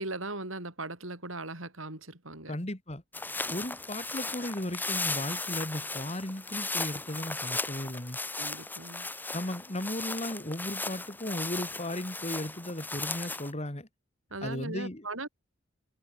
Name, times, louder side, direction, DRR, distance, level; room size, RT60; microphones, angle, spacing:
voice 1, 0.0-2.6 8.4-9.1 14.3-15.3, right 2 dB, 85° right, 7.6 m, -38 dB
voice 2, 2.5-3.0 3.5-8.2 9.3-13.9 14.4-15.1, left 1 dB, 30° left, 2.6 m, -36 dB
sound 1, 3.1-13.5, left 3 dB, 10° left, 3.2 m, -36 dB
head